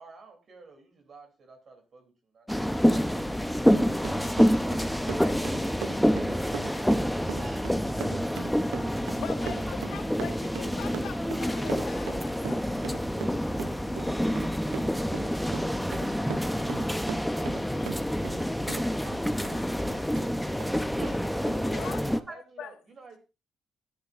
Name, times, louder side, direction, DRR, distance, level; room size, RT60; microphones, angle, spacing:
voice 1, 0.0-3.5 4.6-5.4 20.9-21.2 21.7-23.2, right 4 dB, 50° right, 5 dB, 3.0 m, -51 dB
sound 1, 2.5-22.2, equal, 5° left, 0.7 m, -27 dB
Run, 3.6-18.4 18.7-20.3 20.6-20.7 21.0-21.2 21.5-21.6, right 12 dB, 90° right, 0.6 m, -40 dB
voice 2, 4.2-4.6 8.1-13.8 14.1-15.4 17.4-17.5 17.8-17.9 21.5-22.0 22.6-22.7, left 8 dB, 80° left, 5 dB, 1.5 m, -45 dB
voice 3, 5.1-5.5 5.8-6.8 7.3-7.7 9.4-10.1 18.5-20.7 21.0-21.1 22.3-22.4, right 2 dB, 25° right, 2 dB, 6.7 m, -48 dB
13.5 x 9.2 x 2.5 m, 0.28 s
cardioid pair, 90°, 0 cm